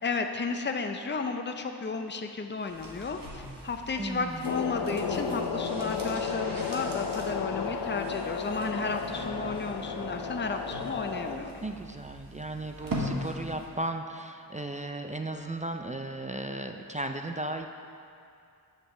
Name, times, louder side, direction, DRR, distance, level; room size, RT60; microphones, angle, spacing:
voice 1, 0.0-11.6, left 4 dB, 25° left, 5 dB, 0.6 m, -33 dB
sound 1, 2.6-13.8 14.1-14.2, equal, 55° right, 1.5 m, -41 dB
voice 2, 4.0-4.5 11.6-17.7, right 2 dB, 20° right, 5 dB, 0.4 m, -35 dB
sound 2, 4.4-11.4, left 5 dB, 80° left, 0.6 m, -33 dB
7.8 x 4.5 x 6.9 m, 2.4 s
wide cardioid pair, 45°, 40 cm